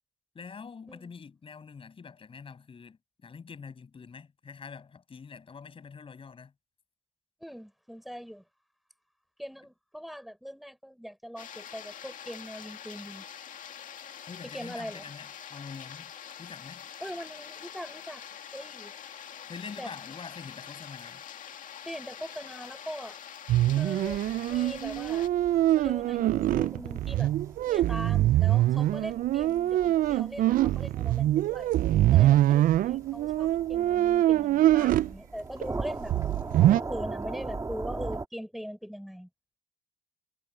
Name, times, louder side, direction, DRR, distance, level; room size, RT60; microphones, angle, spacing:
voice 1, 0.3-6.5 14.3-16.1 16.4-16.9 19.5-21.2, left 5 dB, 30° left, 7.6 m, -45 dB
voice 2, 7.4-8.4 9.4-13.2 14.4-15.0 17.0-18.2 18.5-18.9 19.8-19.9 21.9-23.2 23.7-24.2 24.5-25.3 25.8-27.3 27.7-31.7 32.1-36.1 36.7-39.3, equal, ahead, 5.5 m, -41 dB
sound 1, 11.4-25.3, left 9 dB, 50° left, 2.3 m, -45 dB
sound 2, 23.5-35.1 35.6-35.7 36.0-36.8, right 14 dB, 55° right, 0.4 m, -24 dB
sound 3, 24.0-38.3, right 3 dB, 20° right, 2.5 m, -41 dB
cardioid pair, 110°, 17 cm